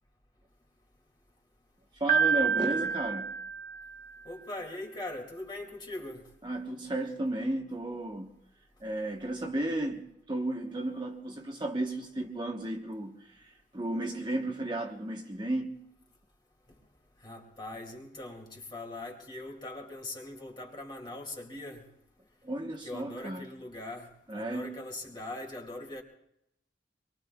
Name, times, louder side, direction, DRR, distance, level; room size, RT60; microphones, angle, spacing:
voice 1, 2.0-3.3 6.4-8.3 8.8-10.0 10.3-15.7 22.4-23.5 24.3-24.7, right 1 dB, 25° right, 1.1 m, -34 dB
Piano, 2.1-4.2, right 6 dB, 45° right, 0.9 m, -28 dB
voice 2, 4.2-6.3 17.2-21.8 22.8-26.0, left 2 dB, 25° left, 2.5 m, -41 dB
26.5 x 22.5 x 2.4 m
head